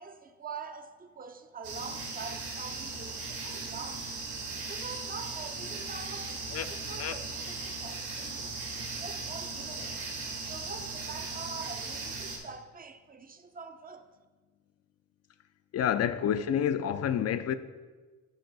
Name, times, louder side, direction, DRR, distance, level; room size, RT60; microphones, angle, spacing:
voice 1, 0.0-4.1 4.7-8.7 8.9-10.0 10.5-14.1, right 5 dB, 30° right, 0.6 m, -45 dB
sound 1, 1.6-12.4, right 3 dB, 80° right, 2.3 m, -38 dB
voice 2, 15.7-17.6, left 9 dB, 55° left, 0.5 m, -28 dB
11.5 x 4.3 x 4.0 m
cardioid pair, 90°, 30 cm